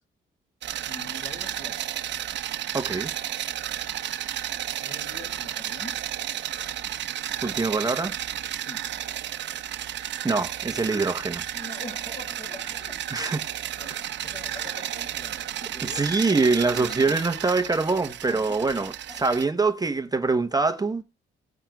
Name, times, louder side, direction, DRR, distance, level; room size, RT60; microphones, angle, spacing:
sound 1, 0.6-19.5, right 11 dB, 65° right, 0.8 m, -33 dB
voice 1, 0.9-1.9 4.8-6.0 8.6-8.9 11.5-16.2 16.6-17.2 18.3-19.2, left 2 dB, 45° left, 6.3 m, -44 dB
voice 2, 2.7-3.1 7.4-8.1 10.2-11.4 13.1-13.4 13.9-14.0 15.8-21.0, right 3 dB, 20° right, 0.9 m, -24 dB
18.5 x 9.9 x 2.3 m
cardioid pair, 90°, 20 cm